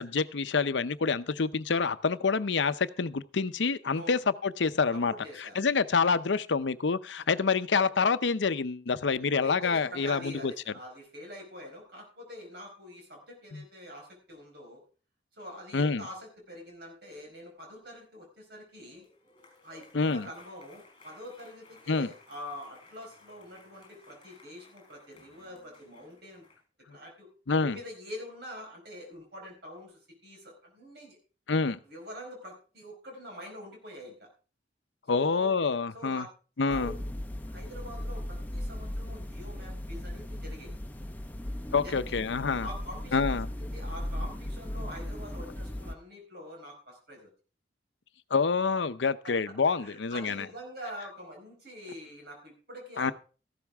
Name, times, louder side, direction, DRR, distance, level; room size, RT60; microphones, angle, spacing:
voice 1, 0.0-5.1 5.4-10.5 13.5-13.6 15.7-16.0 19.9-20.3 21.9-22.1 27.5-27.8 31.5-31.8 35.1-36.3 36.6-36.9 41.7-42.7 43.1-43.5 48.3-50.5 53.0-53.1, left 5 dB, 80° left, 14 dB, 0.6 m, -27 dB
voice 2, 4.9-5.5 9.4-14.8 15.3-19.0 19.6-26.5 26.9-27.3 27.6-31.2 31.8-34.3 35.1-35.6 35.9-36.2 36.6-37.1 37.5-40.8 41.7-42.2 42.6-43.4 43.7-47.3 49.2-53.1, left 1 dB, 60° right, 1 dB, 4.6 m, -45 dB
sound 1, 18.7-26.6, left 3 dB, 25° left, 4.4 m, -58 dB
sound 2, 36.7-45.9, left 1 dB, 10° left, 0.7 m, -37 dB
14.0 x 12.0 x 3.5 m, 0.37 s
head